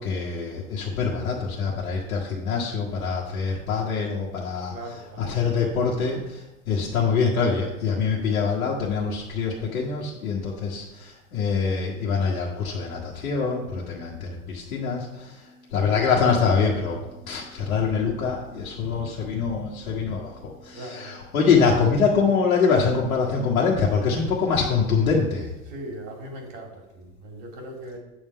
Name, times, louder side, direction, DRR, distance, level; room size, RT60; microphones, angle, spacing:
voice 1, 0.0-25.5, left 5 dB, 80° left, -4 dB, 1.5 m, -24 dB
voice 2, 4.7-5.4 20.7-21.1 25.7-28.0, right 1 dB, 60° right, 0 dB, 3.0 m, -39 dB
8.5 x 3.6 x 6.7 m, 0.97 s
hypercardioid pair, 95°, 41 cm